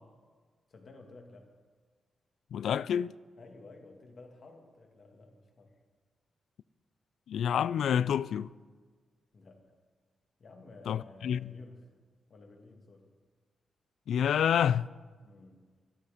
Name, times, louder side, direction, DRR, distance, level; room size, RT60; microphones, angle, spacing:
voice 1, 0.7-1.5 3.4-5.7 9.3-9.7 10.4-11.9 12.3-13.1 15.2-15.7, left 2 dB, 45° left, 1.9 m, -53 dB
voice 2, 2.5-3.2 7.3-8.5 10.9-11.5 14.1-14.9, left 8 dB, 85° left, 0.3 m, -28 dB
12.5 x 12.5 x 5.0 m
wide cardioid pair, 140°, 0 cm